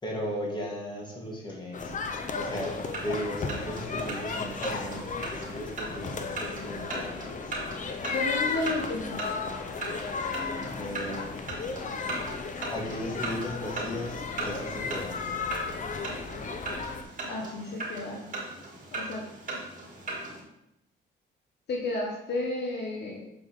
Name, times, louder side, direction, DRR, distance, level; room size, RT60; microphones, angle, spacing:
voice 1, 0.0-1.9 2.4-7.6 10.6-11.4 12.7-15.4, left 1 dB, 20° left, -3 dB, 2.2 m, -36 dB
sound 1, 1.7-17.0, left 4 dB, 40° left, 0.7 m, -35 dB
sound 2, 2.4-20.4, right 2 dB, 40° right, 2.3 m, -39 dB
voice 2, 8.1-9.2 17.3-18.2 18.9-19.2 21.7-23.2, left 2 dB, 55° left, -1 dB, 1.2 m, -32 dB
6.8 x 4.4 x 3.8 m, 0.84 s
cardioid pair, 90°, 20 cm